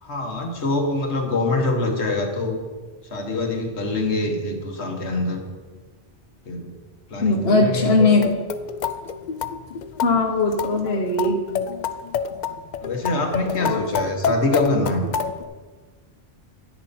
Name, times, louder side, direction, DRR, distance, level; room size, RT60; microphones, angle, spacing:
voice 1, 0.0-2.6 3.1-5.4 6.5-6.8 7.1-7.9 12.8-15.1, left 2 dB, 85° left, 2 dB, 1.7 m, -24 dB
voice 2, 7.2-8.4 10.0-11.4 13.6-13.8, left 3 dB, 70° left, 1 dB, 1.4 m, -19 dB
sound 1, 8.0-15.4, left 6 dB, 55° left, 0.6 m, -28 dB
10.5 x 10.0 x 4.2 m, 1.4 s
omnidirectional pair, 1.1 m